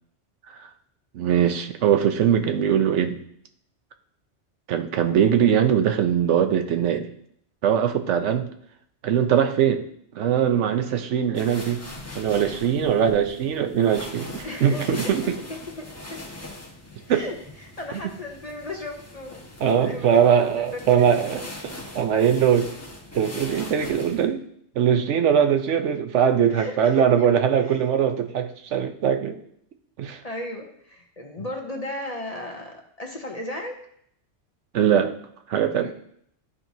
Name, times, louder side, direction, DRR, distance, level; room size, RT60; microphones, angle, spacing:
voice 1, 1.1-3.2 4.7-7.1 7.6-8.5 9.0-9.8 10.1-11.8 12.2-15.2 17.1-17.2 19.6-22.7 23.1-24.4 24.8-29.4 30.0-30.2 34.7-35.2 35.5-35.9, right 8 dB, 80° right, 7 dB, 1.0 m, -21 dB
voice 2, 8.0-8.4 14.4-16.2 17.1-20.3 20.6-21.5 26.5-27.3 27.6-27.8 30.2-33.8 35.8-35.9, left 1 dB, 40° left, 2 dB, 0.7 m, -36 dB
sound 1, 11.3-24.3, left 1 dB, 15° left, 1.3 m, -40 dB
12.5 x 4.5 x 2.7 m, 0.68 s
omnidirectional pair, 1.2 m